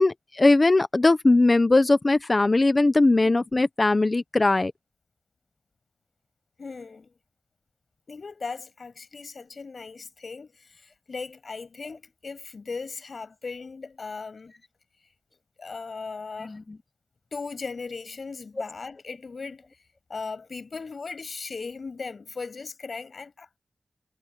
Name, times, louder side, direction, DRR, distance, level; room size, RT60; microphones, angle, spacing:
voice 1, 0.0-4.7 16.4-16.6, left 2 dB, 35° left, 0.9 m, -20 dB
voice 2, 6.6-7.1 8.1-14.5 15.6-16.6 17.3-19.6 20.1-23.5, left 4 dB, 65° left, 7.7 m, -37 dB
wide cardioid pair, 110°, 0 cm